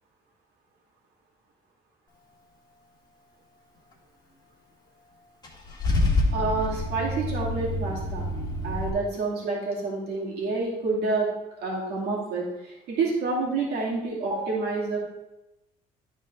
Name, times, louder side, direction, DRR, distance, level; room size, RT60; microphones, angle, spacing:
Car / Engine starting / Idling, 5.4-8.9, left 2 dB, 25° left, 1.6 m, -27 dB
voice 1, 6.3-8.3 8.6-11.3 11.6-15.0, right 3 dB, 75° right, -4 dB, 2.4 m, -28 dB
10.5 x 4.5 x 3.3 m, 0.95 s
cardioid pair, 110°, 17 cm